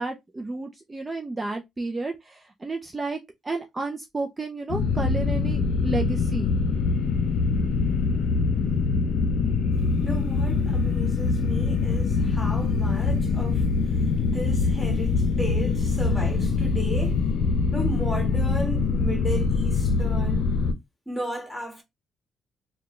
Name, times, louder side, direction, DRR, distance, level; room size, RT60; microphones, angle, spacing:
voice 1, 0.0-3.2 3.4-6.5, right 3 dB, 25° right, 0.5 m, -31 dB
sound 1, 4.7-20.7, left 4 dB, 80° left, 0.6 m, -24 dB
voice 2, 10.0-17.2 17.7-20.5 21.1-21.8, equal, 10° left, 1.8 m, -35 dB
3.8 x 2.3 x 3.1 m
cardioid pair, 90°, 0 cm